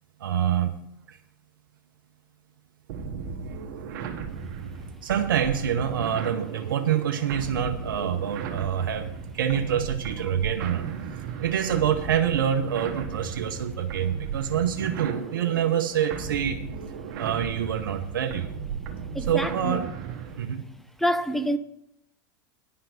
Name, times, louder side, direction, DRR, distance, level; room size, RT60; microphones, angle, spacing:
voice 1, 0.2-0.7 1.1-1.2 5.0-10.9 11.4-16.6 17.2-18.5 19.3-19.9 20.4-20.6, right 9 dB, 90° right, 0.8 m, -26 dB
sound 1, 2.9-20.5, right 6 dB, 65° right, 1.5 m, -36 dB
voice 2, 19.1-19.9 21.0-21.6, equal, ahead, 0.7 m, -27 dB
10.5 x 5.7 x 7.8 m
hypercardioid pair, 110°, 11 cm